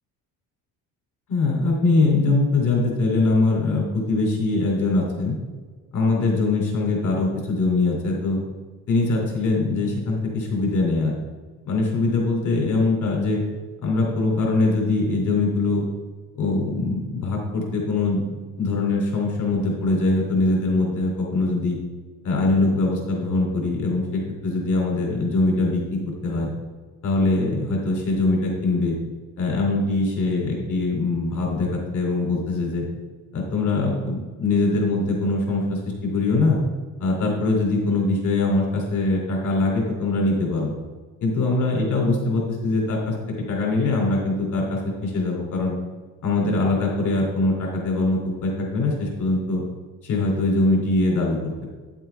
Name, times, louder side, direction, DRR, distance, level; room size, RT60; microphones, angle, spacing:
voice 1, 1.3-5.4 5.9-8.4 8.9-11.1 11.6-13.4 13.8-15.8 16.4-18.2 18.6-21.8 22.2-26.5 27.0-29.0 29.4-32.8 33.3-36.6 37.0-40.7 41.2-43.1 43.5-45.7 46.2-49.6 50.0-51.7, left 2 dB, 55° left, -1 dB, 2.9 m, -22 dB
9.6 x 7.3 x 3.4 m, 1.4 s
cardioid pair, 125°, 36 cm